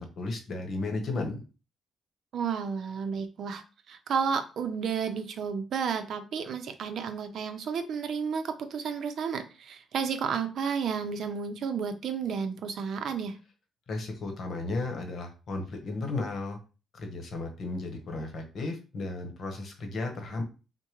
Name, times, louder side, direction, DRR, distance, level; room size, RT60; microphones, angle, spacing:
voice 1, 0.0-1.4 13.9-16.6 16.9-20.4, left 2 dB, 55° left, 4 dB, 1.0 m, -34 dB
voice 2, 2.3-13.4, right 6 dB, 65° right, 8 dB, 0.6 m, -32 dB
4.6 x 2.2 x 3.0 m, 0.32 s
cardioid pair, 90°, 0 cm